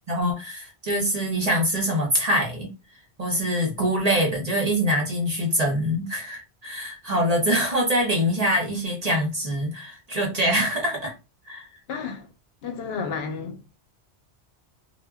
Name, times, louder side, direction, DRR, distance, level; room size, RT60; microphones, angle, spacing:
voice 1, 0.1-2.7 3.2-11.1 11.5-11.7, equal, 45° right, 0.7 m, -24 dB
voice 2, 11.9-12.3 12.6-13.7, left 5 dB, 70° left, 0.8 m, -32 dB
2.1 x 2.0 x 3.4 m
omnidirectional pair, 1.1 m